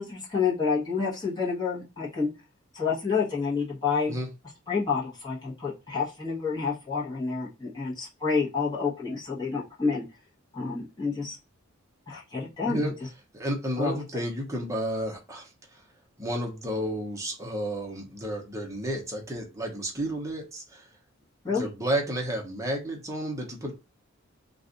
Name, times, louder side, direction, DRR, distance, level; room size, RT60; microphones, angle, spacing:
voice 1, 0.0-2.3 2.7-4.1 4.7-10.0 10.5-11.4 12.1-12.9 13.8-14.0 21.4-21.7, left 5 dB, 20° left, -6 dB, 1.0 m, -29 dB
voice 2, 13.3-15.8 16.2-20.9 21.5-23.7, right 1 dB, 15° right, 0 dB, 0.8 m, -32 dB
2.5 x 2.3 x 3.8 m, 0.28 s
head